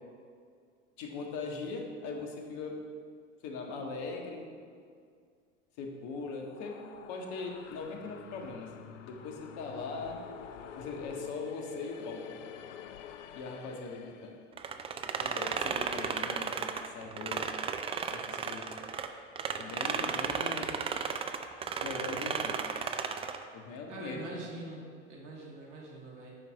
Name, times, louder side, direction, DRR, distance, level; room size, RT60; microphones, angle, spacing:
voice 1, 1.0-2.8 3.4-4.4 5.8-6.8 7.1-8.7 9.0-10.2 10.7-12.2 13.3-14.3 15.2-17.4 18.1-18.6 19.6-20.8 21.8-22.6 23.5-24.3, left 4 dB, 50° left, 1 dB, 1.6 m, -40 dB
sound 1, 6.2-14.5, left 9 dB, 80° left, 0.6 m, -48 dB
sound 2, 14.6-19.1 19.3-23.4, right 6 dB, 15° right, 0.4 m, -34 dB
voice 2, 23.9-26.4, right 2 dB, 70° right, -3 dB, 2.2 m, -44 dB
9.6 x 4.7 x 5.5 m, 2.2 s
hypercardioid pair, 85°, 37 cm